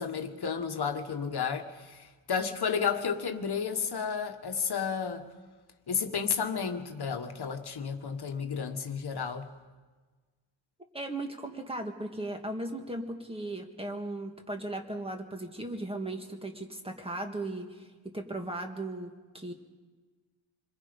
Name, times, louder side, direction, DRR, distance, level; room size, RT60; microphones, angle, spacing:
voice 1, 0.0-5.3 5.9-9.5, left 6 dB, 55° left, 1.5 m, -32 dB
voice 2, 10.9-19.5, right 2 dB, 10° right, 1.8 m, -37 dB
27.5 x 22.0 x 5.3 m
wide cardioid pair, 175°, 47 cm